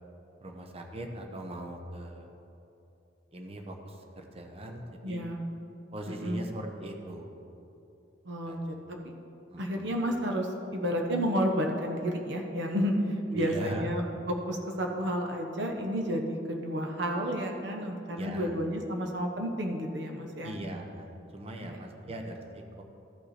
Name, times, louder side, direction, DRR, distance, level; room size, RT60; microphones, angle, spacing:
voice 1, 0.4-2.3 3.3-5.2 5.9-7.5 8.5-8.6 9.5-9.9 13.3-13.9 18.1-18.5 20.4-22.8, right 1 dB, 35° right, 3 dB, 0.8 m, -40 dB
voice 2, 5.0-5.4 6.1-6.4 8.2-8.8 9.6-20.5 21.6-22.1, equal, 70° right, 2 dB, 0.9 m, -31 dB
14.0 x 5.5 x 4.2 m, 2.8 s
head